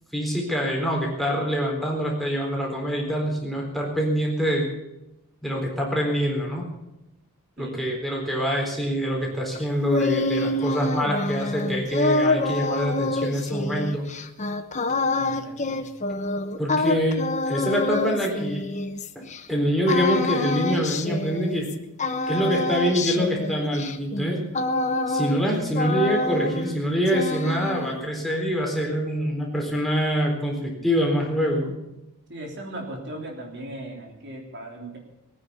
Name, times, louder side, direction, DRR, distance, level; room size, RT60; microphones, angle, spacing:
voice 1, 0.1-4.7 5.4-6.6 7.6-14.1 16.6-18.6 19.2-21.7 22.3-24.4 25.1-31.7, equal, ahead, -1 dB, 4.0 m, -25 dB
sound 1, 9.6-19.4 19.9-21.7 22.0-25.5 25.7-26.8 27.1-28.0, left 2 dB, 30° left, 1.0 m, -26 dB
voice 2, 15.1-15.8 16.9-17.0 32.3-35.0, right 1 dB, 50° right, 1 dB, 3.2 m, -38 dB
21.5 x 9.6 x 7.0 m, 0.95 s
head